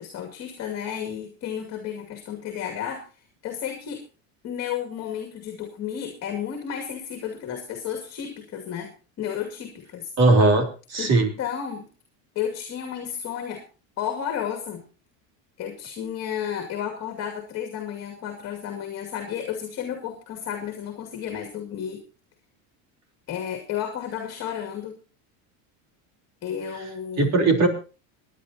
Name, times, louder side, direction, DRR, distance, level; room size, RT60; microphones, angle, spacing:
voice 1, 0.0-3.0 3.4-4.0 4.4-8.9 9.2-10.1 11.0-11.1 11.4-11.9 12.4-13.6 14.0-14.8 15.6-22.0 23.3-25.0 26.4-27.3, left 9 dB, 40° left, 3 dB, 2.5 m, -32 dB
voice 2, 10.2-11.3 27.2-27.7, right 2 dB, 40° right, 4 dB, 3.6 m, -19 dB
27.5 x 10.0 x 2.8 m, 0.34 s
cardioid pair, 145°, 40 cm